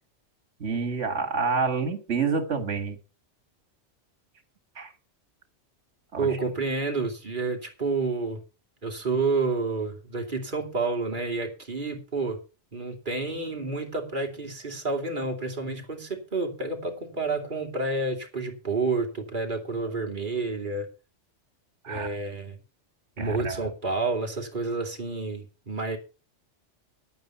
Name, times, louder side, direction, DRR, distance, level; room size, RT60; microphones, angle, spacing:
voice 1, 0.6-3.0 4.8-4.9 6.1-6.3 21.8-22.1 23.2-23.6, right 5 dB, 70° right, 7 dB, 2.2 m, -28 dB
voice 2, 6.2-8.4 8.8-12.4 12.7-20.9 21.9-22.6 23.2-26.0, right 3 dB, 40° right, 2 dB, 2.7 m, -29 dB
10.5 x 9.2 x 5.5 m, 0.33 s
omnidirectional pair, 1.2 m